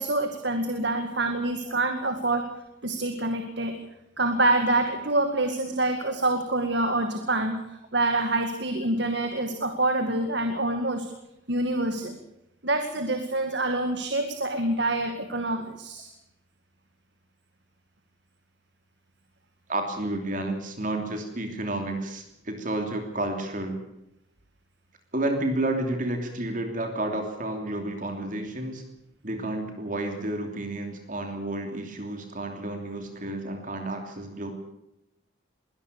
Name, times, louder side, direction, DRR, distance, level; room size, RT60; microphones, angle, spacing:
voice 1, 0.0-2.5 2.8-3.8 4.2-11.1 11.5-12.2 12.6-16.1, right 2 dB, 55° right, 6 dB, 2.2 m, -26 dB
voice 2, 1.6-2.4 19.7-23.8 25.1-28.8 29.2-34.5, right 1 dB, 40° right, 4 dB, 3.0 m, -31 dB
22.5 x 18.0 x 6.9 m, 0.86 s
head